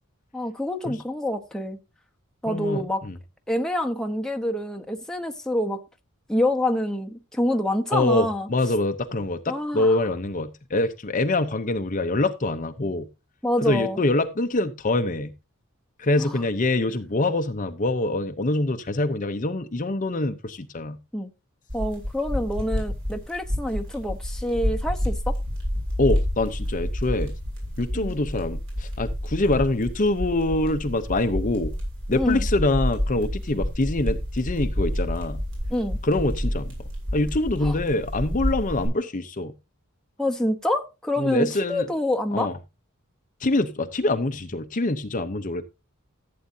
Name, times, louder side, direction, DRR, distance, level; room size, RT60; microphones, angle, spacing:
voice 1, 0.3-1.8 2.4-3.0 3.5-5.8 6.3-8.5 9.5-10.0 13.4-14.0 16.2-16.4 21.1-21.3 21.7-25.4 27.9-28.1 32.1-32.5 35.7-36.0 37.6-37.8 40.2-42.5, left 1 dB, 5° left, 1.0 m, -27 dB
voice 2, 2.5-3.2 7.9-13.1 13.6-15.3 16.0-21.0 26.0-27.3 27.8-31.7 32.1-35.4 36.0-36.7 37.1-39.5 41.2-41.9 42.3-42.5 43.4-45.6, left 2 dB, 35° left, 0.8 m, -25 dB
sound 1, 21.7-38.9, equal, 60° right, 7.1 m, -29 dB
15.0 x 8.6 x 2.8 m
head